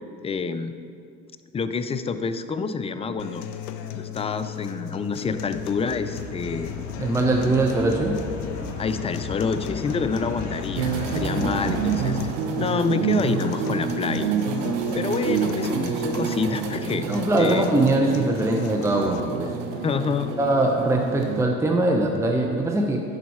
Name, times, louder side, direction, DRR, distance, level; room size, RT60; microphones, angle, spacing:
voice 1, 0.2-0.7 1.5-3.5 3.9-6.7 8.8-14.3 14.9-17.1 17.4-17.7 19.8-20.3, left 5 dB, 15° left, 11 dB, 0.4 m, -27 dB
sound 1, 3.2-19.2, left 9 dB, 70° left, 0.6 m, -37 dB
sound 2, 5.3-12.1, left 3 dB, 45° left, 1.7 m, -35 dB
voice 2, 7.0-8.2 17.1-19.6 20.4-23.0, right 2 dB, 10° right, 1 dB, 0.7 m, -22 dB
sound 3, 10.8-21.4, right 5 dB, 75° right, 0.9 m, -28 dB
11.0 x 4.0 x 4.7 m, 2.4 s
hypercardioid pair, 70°, 38 cm